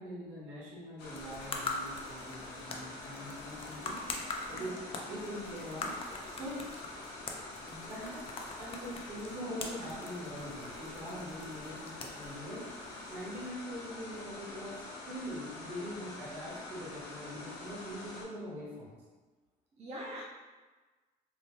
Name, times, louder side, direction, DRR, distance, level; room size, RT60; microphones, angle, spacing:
voice 1, 0.0-4.0 4.4-4.7 5.0-7.0 7.7-8.2 8.6-12.6 13.1-19.0, equal, 90° right, -8 dB, 1.3 m, -43 dB
sound 1, 1.0-18.2, left 2 dB, 90° left, 0.7 m, -46 dB
sound 2, 1.0-13.5, left 3 dB, 35° left, 0.4 m, -44 dB
voice 2, 19.7-20.2, right 1 dB, 40° right, -5 dB, 0.7 m, -43 dB
3.2 x 2.1 x 2.8 m, 1.3 s
cardioid pair, 110°, 17 cm